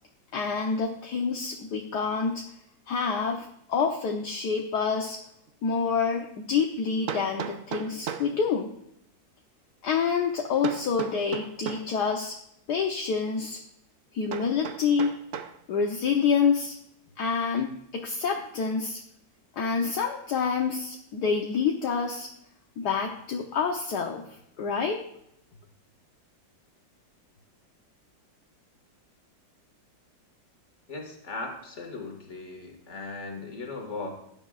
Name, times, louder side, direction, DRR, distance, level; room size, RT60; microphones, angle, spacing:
voice 1, 0.3-2.4 2.9-5.2 5.6-8.7 9.8-12.3 12.7-13.6 14.1-15.1 15.7-16.7 17.2-19.0 19.6-22.3 22.8-24.2 24.6-25.0, left 5 dB, 65° left, 1 dB, 1.5 m, -27 dB
Hammer, 5.5-5.6 7.1-8.4 10.6-11.9 14.3-15.6, right 7 dB, 60° right, 0.9 m, -36 dB
voice 2, 30.9-34.1, left 3 dB, 40° left, 3 dB, 2.2 m, -38 dB
16.5 x 10.5 x 2.5 m, 0.74 s
omnidirectional pair, 2.0 m